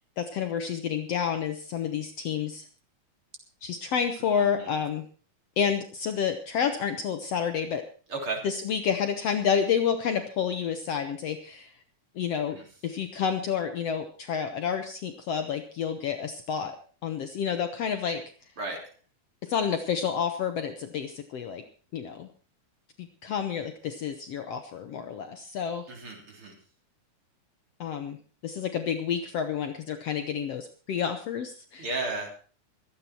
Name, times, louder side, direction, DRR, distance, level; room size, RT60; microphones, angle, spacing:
voice 1, 0.2-2.7 3.6-5.1 5.6-7.9 8.4-11.7 12.2-16.8 17.0-18.2 19.4-21.6 21.9-22.3 23.0-25.9 27.8-28.2 28.4-31.9, left 7 dB, 65° left, 7 dB, 1.8 m, -29 dB
voice 2, 4.4-4.7 8.1-8.4 12.5-12.6 18.6-18.8 25.9-26.5 31.8-32.3, right 3 dB, 40° right, 1 dB, 4.2 m, -33 dB
23.5 x 8.8 x 4.5 m, 0.40 s
omnidirectional pair, 3.6 m